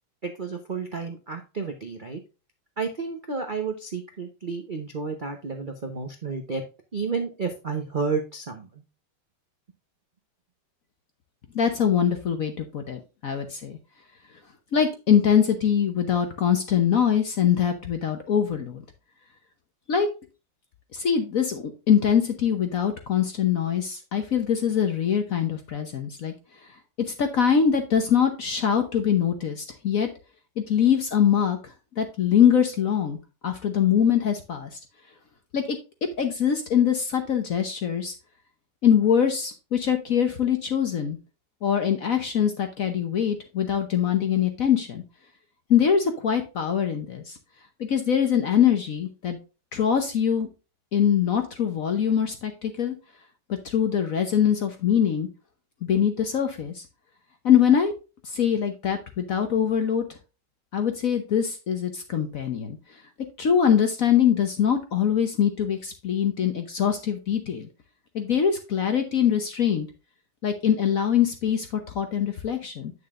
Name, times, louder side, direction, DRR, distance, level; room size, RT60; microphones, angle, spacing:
voice 1, 0.2-2.2 2.8-6.6 6.9-8.8, right 4 dB, 60° right, 4 dB, 0.5 m, -31 dB
voice 2, 11.5-13.8 14.7-18.8 19.9-20.1 20.9-26.3 27.1-30.1 30.6-31.6 32.0-33.2 33.4-34.8 35.5-35.8 36.2-38.1 38.8-41.2 41.6-45.0 45.7-47.3 47.8-49.4 49.7-50.5 50.9-52.9 53.5-55.3 55.8-56.8 57.4-57.9 58.2-60.0 60.7-62.8 63.4-67.7 68.1-69.9 70.4-72.9, left 8 dB, 55° left, 6 dB, 1.0 m, -23 dB
8.7 x 6.7 x 2.5 m, 0.30 s
omnidirectional pair, 2.3 m